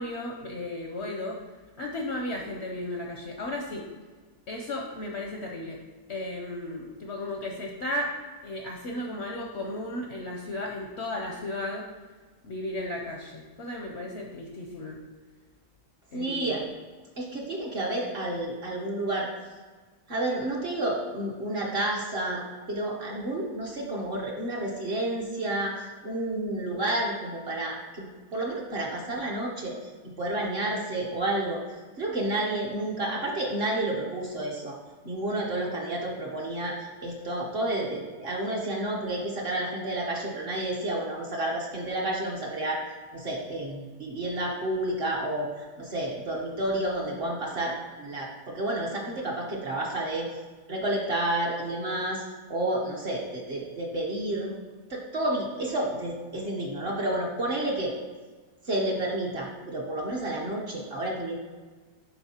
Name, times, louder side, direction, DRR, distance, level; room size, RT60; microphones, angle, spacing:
voice 1, 0.0-1.4 1.8-3.8 4.5-5.8 6.1-8.1 8.4-11.9 12.4-15.0 16.1-16.6, left 1 dB, 60° left, 0 dB, 0.7 m, -34 dB
voice 2, 16.1-16.6 17.2-19.3 20.1-22.4 22.7-28.1 28.3-29.8 30.2-31.6 32.0-34.8 35.0-42.8 43.1-50.3 50.7-52.2 52.5-54.5 54.9-57.9 58.6-61.4, right 1 dB, 45° right, -2 dB, 0.9 m, -30 dB
10.5 x 3.9 x 2.8 m, 1.4 s
omnidirectional pair, 1.8 m